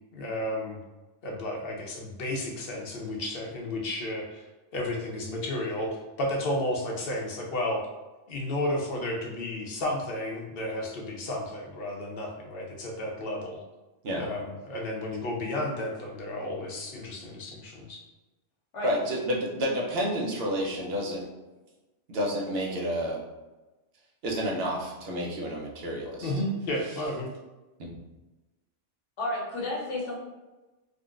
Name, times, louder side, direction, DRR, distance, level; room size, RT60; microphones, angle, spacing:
voice 1, 0.1-0.8 1.2-4.5 4.7-7.8 8.3-13.6 14.2-18.0 26.2-27.3, left 1 dB, 60° left, -1 dB, 0.8 m, -32 dB
voice 2, 18.8-21.2 22.1-23.2 24.2-26.3 27.8-27.9, equal, 60° right, -2 dB, 0.8 m, -30 dB
voice 3, 29.2-30.2, left 1 dB, 75° left, -4 dB, 1.2 m, -31 dB
3.7 x 2.1 x 2.4 m, 1.1 s
omnidirectional pair, 1.2 m